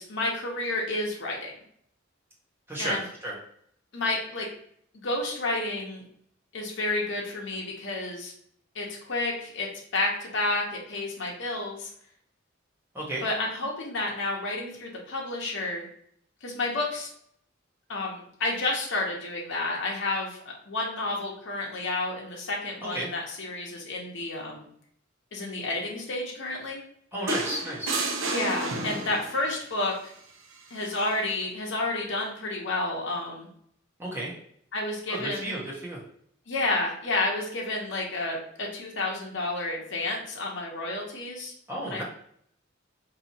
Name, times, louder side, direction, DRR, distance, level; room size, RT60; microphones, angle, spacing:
voice 1, 0.0-1.5 2.8-3.0 3.9-4.5 5.0-6.0 6.5-8.3 8.7-9.7 9.9-11.9 13.2-15.9 16.4-17.1 17.9-24.7 25.3-26.8 28.3-30.1 30.7-33.5 34.7-35.6 36.5-41.5 41.8-42.0, left 2 dB, 65° left, -1 dB, 0.8 m, -30 dB
voice 2, 2.7-3.3 12.9-13.2 22.9-23.1 27.1-27.9 34.0-34.3 35.1-36.0 41.7-42.0, right 1 dB, 10° right, -5 dB, 0.7 m, -33 dB
sound 1, 27.3-29.4 30.8-31.0, right 2 dB, 85° right, 0.7 m, -31 dB
4.1 x 2.8 x 2.8 m, 0.66 s
head